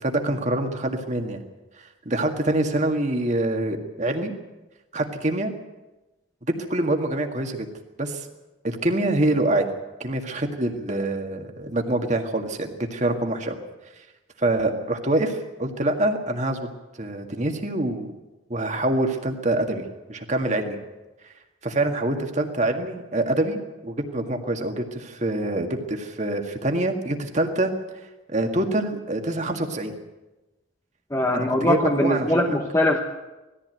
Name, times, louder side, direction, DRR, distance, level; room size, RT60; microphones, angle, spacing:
voice 1, 0.0-1.4 2.1-4.3 4.9-5.5 6.7-7.7 8.0-8.3 8.6-9.7 10.0-13.6 14.4-16.7 17.0-18.1 18.5-20.8 21.6-27.7 28.3-29.9 31.3-32.6, right 1 dB, 35° right, 4 dB, 2.0 m, -25 dB
voice 2, 31.1-33.0, left 1 dB, 15° left, 2 dB, 1.1 m, -22 dB
20.0 x 14.5 x 9.1 m, 1.1 s
head